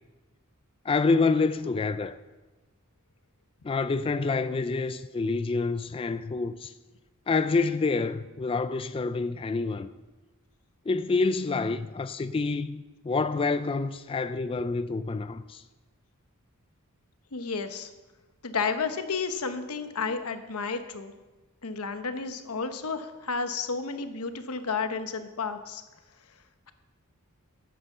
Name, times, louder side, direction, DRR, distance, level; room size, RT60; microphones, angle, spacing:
voice 1, 0.9-2.2 3.6-6.7 7.3-9.9 10.9-15.6, left 4 dB, 25° left, 0.3 m, -27 dB
voice 2, 17.3-17.9 18.4-21.1 21.6-25.8, left 5 dB, 90° left, 1.0 m, -32 dB
9.5 x 8.8 x 6.7 m
head